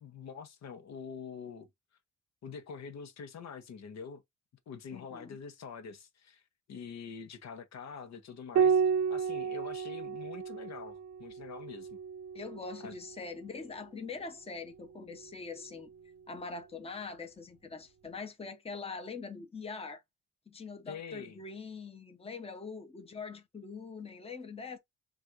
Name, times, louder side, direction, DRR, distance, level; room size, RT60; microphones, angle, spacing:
voice 1, 0.0-1.7 2.4-4.2 4.7-6.4 6.7-8.8 9.1-12.0 12.8-13.0 20.9-21.4, left 6 dB, 60° left, 1.0 m, -45 dB
voice 2, 4.9-5.4 12.3-15.9 16.3-20.0 20.5-24.8, left 4 dB, 20° left, 1.0 m, -43 dB
Piano, 8.6-13.4 15.0-15.9, right 6 dB, 55° right, 0.6 m, -32 dB
7.3 x 2.6 x 2.6 m
cardioid pair, 90°, 30 cm